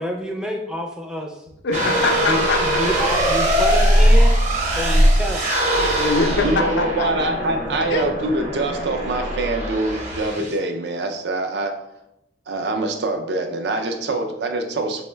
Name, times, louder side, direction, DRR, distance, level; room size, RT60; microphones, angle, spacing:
voice 1, 0.0-1.4 2.2-4.4 4.7-5.5, right 1 dB, 5° right, 1 dB, 0.4 m, -28 dB
voice 2, 1.6-2.6 5.8-7.1 7.9-8.1, left 3 dB, 80° left, 4 dB, 0.5 m, -23 dB
sound 1, 1.7-10.6, equal, 40° right, 0.8 m, -20 dB
voice 3, 6.4-11.7 12.5-15.0, right 2 dB, 65° right, 6 dB, 0.5 m, -24 dB
4.3 x 2.1 x 3.2 m, 0.85 s
head